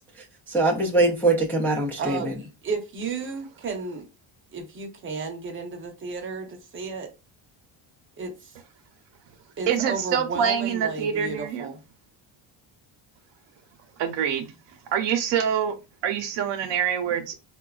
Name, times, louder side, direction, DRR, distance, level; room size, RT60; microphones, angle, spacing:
voice 1, 0.2-2.3, right 2 dB, 5° left, 0.3 m, -23 dB
voice 2, 2.0-4.0 4.5-7.1 8.2-8.5 9.6-11.8, right 4 dB, 25° right, 0.7 m, -33 dB
voice 3, 9.7-11.7 14.0-14.5 14.9-15.7 16.0-17.3, right 8 dB, 65° right, 0.7 m, -25 dB
4.2 x 2.2 x 2.3 m
cardioid pair, 145°, 47 cm